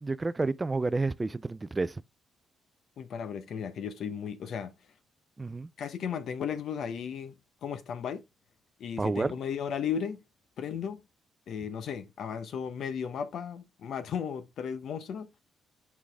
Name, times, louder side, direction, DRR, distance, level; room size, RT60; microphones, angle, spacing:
voice 1, 0.0-1.9 5.4-5.7 9.0-9.3, right 3 dB, 20° right, 0.3 m, -30 dB
voice 2, 3.0-4.7 5.8-7.3 7.6-8.2 8.8-10.2 10.6-11.0 11.5-15.3, left 7 dB, 65° left, 0.9 m, -35 dB
6.0 x 4.8 x 3.5 m
cardioid pair, 90°, 0 cm